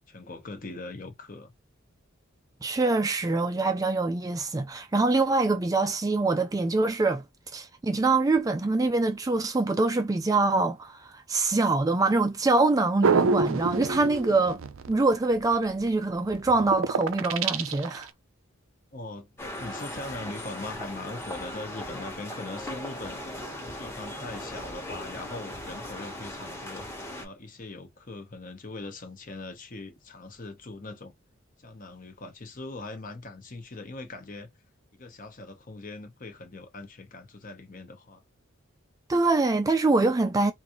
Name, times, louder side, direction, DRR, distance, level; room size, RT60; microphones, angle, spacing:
voice 1, 0.0-1.5 18.9-19.3 19.6-23.2 23.5-31.1 31.6-34.5 34.9-38.2, left 2 dB, 40° left, 0.8 m, -41 dB
voice 2, 2.6-7.2 7.5-14.6 14.9-18.1 39.1-40.5, right 3 dB, 15° right, 0.3 m, -24 dB
sound 1, 13.0-15.0 15.6-15.9 16.3-18.0, right 5 dB, 75° right, 0.5 m, -26 dB
sound 2, 19.4-27.2, left 1 dB, 10° left, 1.0 m, -38 dB
3.7 x 2.6 x 2.9 m
head